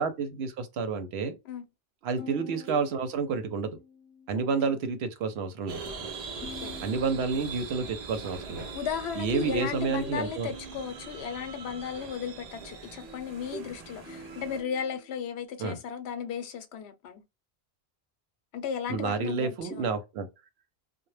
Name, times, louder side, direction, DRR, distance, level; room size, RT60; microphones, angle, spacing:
voice 1, 0.0-1.3 2.0-3.8 4.3-5.8 6.8-8.7 9.2-10.5 15.6-15.8 18.9-20.3, right 5 dB, 85° right, 0.8 m, -30 dB
sound 1, 2.2-4.5 5.8-6.1 6.4-7.7 9.4-11.1 13.0-15.3, equal, 15° left, 0.8 m, -46 dB
voice 2, 4.3-4.8 6.6-6.7 8.7-17.2 18.5-20.0, left 7 dB, 85° left, 0.8 m, -35 dB
sound 2, 5.7-14.6, right 4 dB, 50° right, 0.5 m, -42 dB
2.1 x 2.0 x 3.0 m
omnidirectional pair, 1.0 m